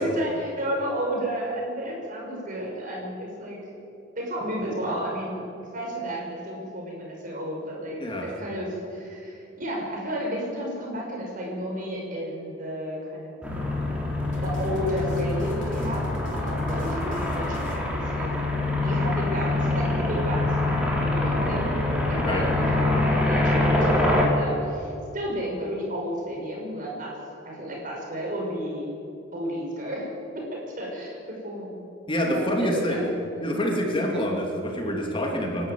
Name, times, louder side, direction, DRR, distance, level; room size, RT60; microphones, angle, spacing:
voice 1, 0.0-3.6 4.2-5.4 5.7-13.4 14.4-16.1 16.3-17.6 17.9-18.3 18.8-20.6 21.0-21.6 22.1-27.2 27.4-28.9 29.3-30.1 30.3-31.8 32.2-33.0 33.3-33.5, equal, 45° right, -1 dB, 5.9 m, -32 dB
voice 2, 8.0-8.3 22.2-22.5 32.1-33.0 33.4-35.7, equal, 30° left, 0 dB, 2.9 m, -26 dB
sound 1, 13.4-24.3, left 2 dB, 5° right, 3.8 m, -25 dB
sound 2, 14.3-18.6, equal, 85° left, 4.4 m, -42 dB
26.5 x 12.0 x 9.4 m, 2.8 s
head